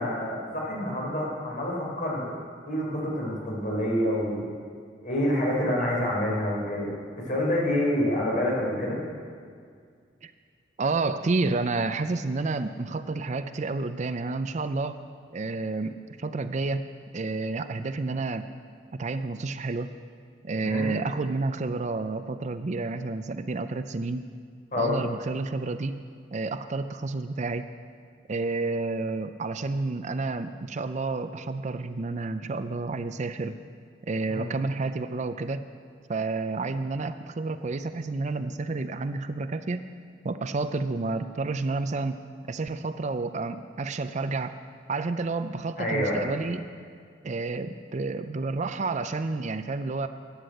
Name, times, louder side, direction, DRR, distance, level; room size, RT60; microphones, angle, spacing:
voice 1, 0.0-2.3 2.6-4.4 5.0-6.9 7.2-9.0 20.6-21.0 24.7-25.0 34.3-34.5 45.8-46.3, left 1 dB, 45° left, -3 dB, 4.3 m, -27 dB
voice 2, 10.8-15.0 15.3-16.9 17.1-18.4 18.9-19.9 20.4-24.3 24.8-26.0 26.3-27.7 28.3-33.5 34.0-35.6 36.1-39.8 40.2-42.2 42.5-44.5 44.9-46.7 47.2-50.1, right 3 dB, 40° right, 10 dB, 0.5 m, -30 dB
13.0 x 10.0 x 7.7 m, 2.1 s
head